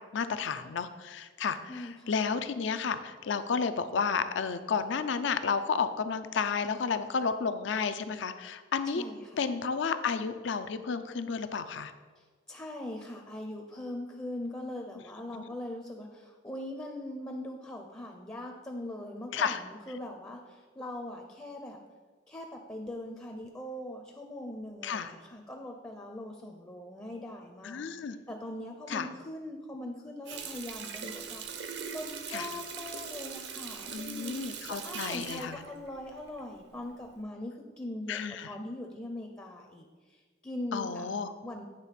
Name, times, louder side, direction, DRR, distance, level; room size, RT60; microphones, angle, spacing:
voice 1, 0.1-9.0 9.4-11.9 19.3-19.6 24.8-25.1 27.6-28.2 28.9-29.1 32.3-32.5 33.9-35.6 38.1-38.5 40.7-41.3, left 5 dB, 70° left, 11 dB, 0.5 m, -32 dB
voice 2, 1.7-2.2 8.9-9.4 12.2-21.8 22.3-27.8 28.3-38.2 38.5-41.1 41.4-41.7, left 1 dB, 15° left, 2 dB, 0.5 m, -41 dB
Water tap faucet, 30.3-36.6 37.0-37.2, right 6 dB, 60° right, 0.6 m, -41 dB
8.9 x 3.5 x 5.8 m, 1.4 s
head